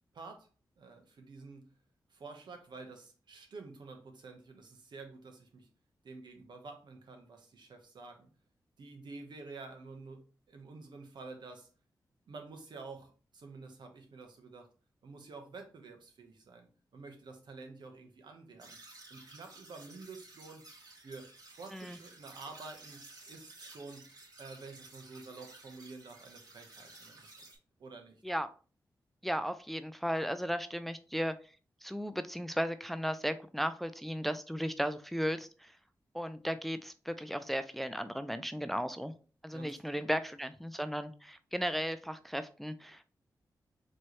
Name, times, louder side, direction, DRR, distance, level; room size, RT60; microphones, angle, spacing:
voice 1, 0.1-0.5 0.8-1.7 2.1-5.7 6.0-8.3 8.8-11.7 12.3-14.7 15.0-16.7 16.9-18.8 19.1-20.6 20.9-24.1 24.4-27.3 27.8-28.2 39.5-40.1, right 3 dB, 75° right, 4 dB, 1.0 m, -49 dB
sound 1, 18.6-27.6, right 2 dB, 60° right, 2.4 m, -54 dB
voice 2, 29.2-31.3 31.8-35.7 36.1-39.1 39.4-43.0, equal, ahead, 11 dB, 0.4 m, -35 dB
4.4 x 3.1 x 3.0 m, 0.37 s
cardioid pair, 55°, 8 cm